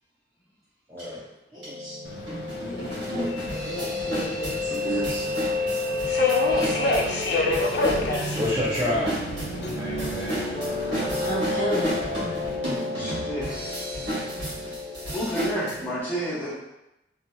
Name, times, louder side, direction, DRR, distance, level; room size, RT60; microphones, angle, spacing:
voice 1, 0.9-1.2 1.5-2.0 4.9-5.0 6.5-7.4 8.1-9.2 9.7-11.0 14.0-14.4, left 1 dB, 20° right, -9 dB, 0.5 m, -32 dB
sound 1, 1.0-1.1 1.6-1.7 2.3-15.7, right 1 dB, 70° right, 1.2 m, -33 dB
Piano, 1.6-16.0, left 3 dB, 50° right, 1.2 m, -31 dB
Subway metro underground, 2.0-12.6, left 2 dB, 60° left, 0.4 m, -30 dB
voice 2, 2.7-4.7 11.2-12.0, right 1 dB, 40° left, -7 dB, 0.8 m, -32 dB
voice 3, 4.7-5.2 7.3-7.4 10.6-11.3 12.9-13.5 15.1-16.5, right 1 dB, 10° left, -10 dB, 0.9 m, -31 dB
2.7 x 2.7 x 2.2 m, 0.91 s
head